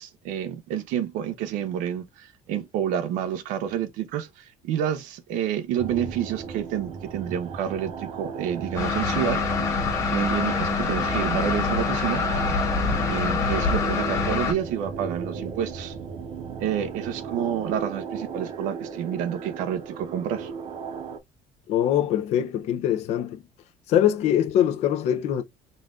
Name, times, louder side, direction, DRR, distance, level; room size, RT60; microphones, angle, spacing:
voice 1, 0.0-12.2 13.1-16.0 16.6-20.5, right 9 dB, 65° right, 0.7 m, -29 dB
sound 1, 5.8-21.2, right 6 dB, 40° right, 0.9 m, -36 dB
virginia tunnelvent, 8.8-14.5, left 4 dB, 20° left, 1.4 m, -25 dB
voice 2, 21.7-23.4 23.9-25.4, left 10 dB, 50° left, 0.7 m, -23 dB
3.9 x 2.5 x 3.4 m
cardioid pair, 170°, 14 cm